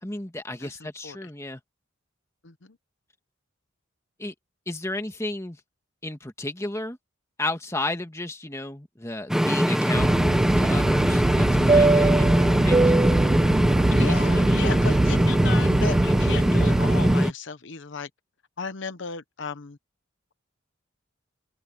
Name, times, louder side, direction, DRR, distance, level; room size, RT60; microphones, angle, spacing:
voice 1, 0.0-1.6 4.2-4.3 4.7-5.6 6.0-7.0 7.4-12.8 14.1-14.8, left 2 dB, 15° left, 1.6 m, -33 dB
voice 2, 0.6-1.3 2.4-2.8 13.9-18.1 18.6-19.8, left 5 dB, 65° left, 0.9 m, -35 dB
sound 1, 9.3-17.3, equal, 5° right, 0.8 m, -22 dB
Fixed-wing aircraft airplane, 9.9-17.2, right 2 dB, 20° right, 0.3 m, -22 dB
head